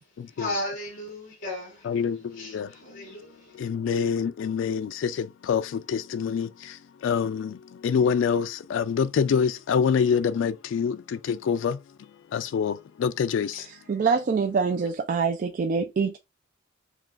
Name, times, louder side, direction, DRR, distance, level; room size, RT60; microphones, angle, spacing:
voice 1, 0.4-1.9 2.4-3.6, left 1 dB, 45° left, 1.4 m, -35 dB
voice 2, 1.8-3.1 3.5-13.7, left 6 dB, 75° left, 0.3 m, -26 dB
voice 3, 13.9-16.2, right 5 dB, 45° right, 0.3 m, -25 dB
6.0 x 2.3 x 2.4 m
head